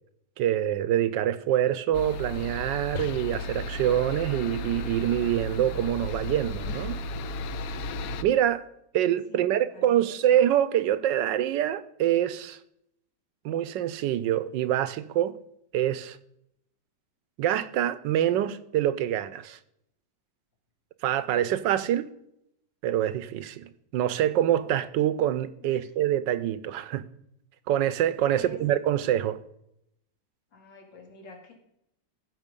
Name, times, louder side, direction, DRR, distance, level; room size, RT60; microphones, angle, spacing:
voice 1, 0.4-7.0 8.2-8.7 8.9-12.6 13.4-15.3 15.7-16.2 17.4-19.6 21.0-22.1 22.8-27.1 27.7-29.4, right 11 dB, 80° right, 1.3 m, -25 dB
sound 1, 1.9-8.2, left 1 dB, 70° left, 0.9 m, -34 dB
voice 2, 9.3-10.4 25.6-25.9 28.3-28.6 30.5-31.5, left 2 dB, 85° left, 2.8 m, -48 dB
15.0 x 5.8 x 5.3 m
omnidirectional pair, 2.0 m